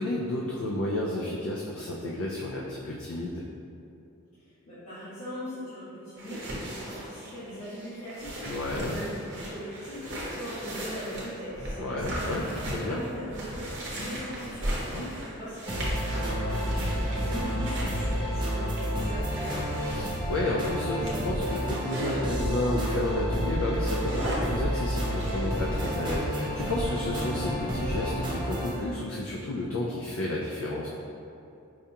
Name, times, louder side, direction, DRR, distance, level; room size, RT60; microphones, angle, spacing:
voice 1, 0.0-3.4 8.4-9.0 11.8-13.0 14.9-15.1 19.9-30.9, left 1 dB, 65° left, -3 dB, 0.3 m, -31 dB
voice 2, 4.7-8.4 8.8-19.7, equal, 90° left, -16 dB, 1.3 m, -40 dB
sound 1, 6.2-22.2 22.8-23.0 23.4-26.1, right 1 dB, 50° right, 0.7 m, -37 dB
sound 2, 15.7-28.8, equal, 20° right, 0.5 m, -30 dB
4.8 x 2.2 x 2.7 m, 2.7 s
head